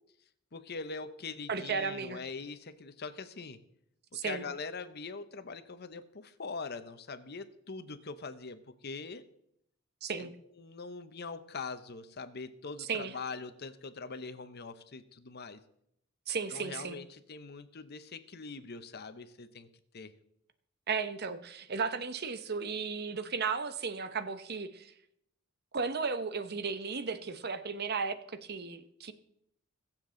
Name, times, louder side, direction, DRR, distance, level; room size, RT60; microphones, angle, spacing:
voice 1, 0.5-3.6 4.2-9.2 10.2-10.3 10.6-15.6 16.5-19.7 19.9-20.1, left 4 dB, 50° left, 11 dB, 0.9 m, -42 dB
voice 2, 1.5-2.2 4.1-4.4 10.0-10.3 12.8-13.1 16.3-17.0 20.9-24.9 25.7-29.1, right 5 dB, 50° right, 11 dB, 0.9 m, -35 dB
22.0 x 7.4 x 3.9 m, 0.75 s
head